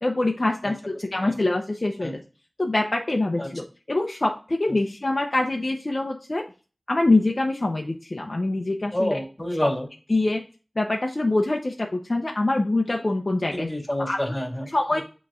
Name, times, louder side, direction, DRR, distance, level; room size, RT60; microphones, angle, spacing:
voice 1, 0.0-2.2 2.6-6.4 6.9-9.2 9.6-9.7 10.1-10.4 10.8-13.7 14.0-14.3 14.7-15.0, left 2 dB, 50° left, 2 dB, 0.7 m, -24 dB
voice 2, 0.6-1.3 2.0-2.1 3.4-3.5 8.9-9.9 13.5-15.0, left 1 dB, 20° left, -1 dB, 2.4 m, -29 dB
8.3 x 3.1 x 3.7 m, 0.34 s
wide cardioid pair, 55°, 0 cm